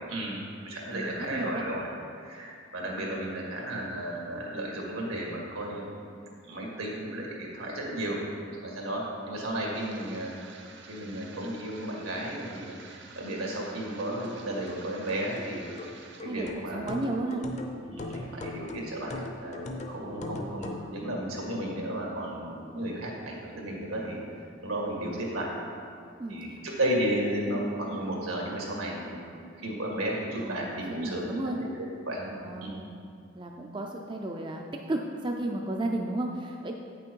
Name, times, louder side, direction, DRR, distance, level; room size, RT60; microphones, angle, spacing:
voice 1, 0.0-1.9 2.2-5.9 6.4-8.2 8.6-10.3 10.9-12.7 13.2-15.6 16.2-17.0 17.9-24.2 24.6-25.5 26.3-31.7 32.1-32.3 32.6-32.7, right 1 dB, 85° right, -2 dB, 1.9 m, -33 dB
voice 2, 0.9-1.6 16.3-17.4 26.2-26.6 30.4-31.6 32.4-33.0 33.4-34.6 34.9-36.7, right 2 dB, 20° right, 1 dB, 0.4 m, -33 dB
sound 1, 9.7-16.2, right 4 dB, 55° right, 0.8 m, -50 dB
sound 2, 14.2-20.9, left 2 dB, 35° left, 0.6 m, -39 dB
8.8 x 6.1 x 4.5 m, 2.4 s
head